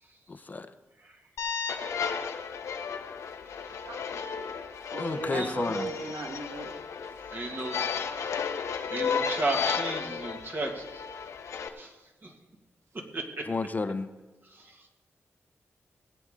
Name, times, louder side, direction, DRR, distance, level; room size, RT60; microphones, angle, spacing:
voice 1, 0.3-0.7 5.0-5.9 13.5-14.1, left 3 dB, 35° left, 10 dB, 0.7 m, -31 dB
sound 1, 1.4-11.7, left 6 dB, 80° left, 0.9 m, -34 dB
voice 2, 3.8-4.5 4.9-6.7, right 2 dB, 80° right, 3 dB, 1.7 m, -37 dB
voice 3, 7.3-7.8 8.2-8.3 8.9-11.0 11.8-11.9 12.2-12.3 13.1-13.5 14.5-14.8, right 2 dB, 45° right, 2 dB, 2.1 m, -34 dB
19.0 x 8.7 x 3.8 m, 1.1 s
cardioid pair, 75°, 5 cm